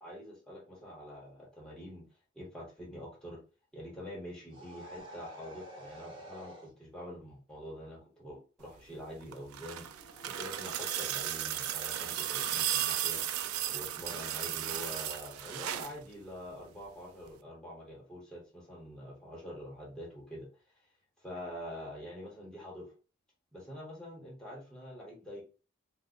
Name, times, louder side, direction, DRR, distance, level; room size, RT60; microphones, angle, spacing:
voice 1, 0.0-2.0 2.3-3.4 3.7-9.9 10.2-13.2 13.7-20.5 21.2-22.9 23.5-25.4, equal, 5° left, -4 dB, 1.0 m, -45 dB
sound 1, 4.5-6.7 9.7-15.3, right 1 dB, 25° right, 0.6 m, -52 dB
sound 2, 9.2-16.0 17.3-17.4, right 11 dB, 90° right, 0.3 m, -35 dB
2.7 x 2.1 x 3.7 m, 0.35 s
head